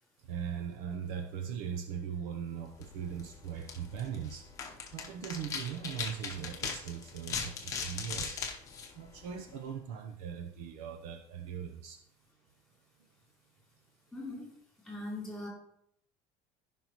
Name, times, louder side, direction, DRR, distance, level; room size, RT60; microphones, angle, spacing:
voice 1, 0.2-4.5 4.9-8.4 8.9-12.0, right 8 dB, 65° right, 6 dB, 0.7 m, -40 dB
sound 1, 2.7-9.6, left 5 dB, 25° left, 0.9 m, -40 dB
voice 2, 14.1-14.4 14.8-15.5, left 2 dB, ahead, -5 dB, 3.1 m, -40 dB
15.0 x 5.5 x 3.0 m, 0.72 s
cardioid pair, 175°, 14 cm